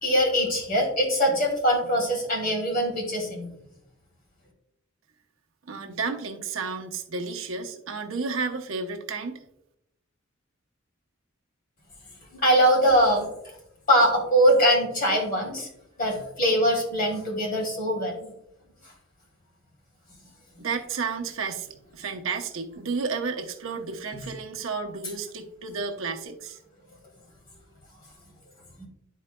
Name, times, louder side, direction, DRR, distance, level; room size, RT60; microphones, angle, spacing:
voice 1, 0.0-3.5 12.3-13.6 13.9-15.7 16.0-18.3 24.1-24.2 28.8-28.9, equal, 50° left, -1 dB, 2.5 m, -22 dB
voice 2, 5.7-9.4 20.6-26.6, right 4 dB, 80° right, 4 dB, 0.8 m, -32 dB
11.0 x 4.6 x 2.2 m, 0.80 s
head